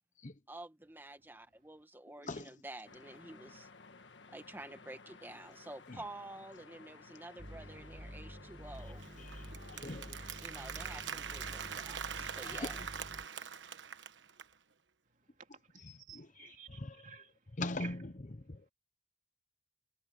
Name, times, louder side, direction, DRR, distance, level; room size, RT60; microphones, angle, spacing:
voice 1, 0.5-3.7 4.3-9.1 10.4-12.9, right 1 dB, 10° right, 1.6 m, -50 dB
voice 2, 2.2-2.6 5.9-6.0 9.2-10.2 12.6-12.7 15.8-17.0 17.6-18.7, left 2 dB, 45° left, 1.0 m, -42 dB
sound 1, 2.8-12.9, left 4 dB, 80° left, 1.6 m, -56 dB
sound 2, 7.4-13.3, equal, 25° right, 2.0 m, -49 dB
Applause, 8.7-14.5, right 7 dB, 80° right, 1.2 m, -43 dB
voice 3, 15.0-17.9, right 7 dB, 45° right, 3.0 m, -54 dB
head